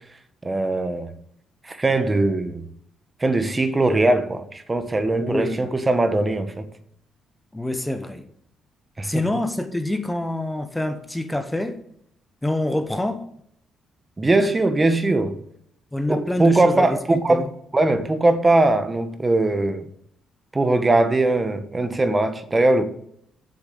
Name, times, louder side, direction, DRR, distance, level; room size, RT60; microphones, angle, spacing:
voice 1, 0.4-1.1 1.6-2.6 3.2-6.6 9.0-9.1 14.2-15.4 16.1-17.5 17.7-19.9 20.5-22.8, right 2 dB, 20° right, 1.1 m, -20 dB
voice 2, 5.2-5.7 7.5-8.2 9.0-11.8 12.4-13.3 15.9-17.0 17.3-17.5, left 1 dB, 10° left, 1.0 m, -26 dB
7.8 x 6.9 x 8.3 m
cardioid pair, 90°, 0 cm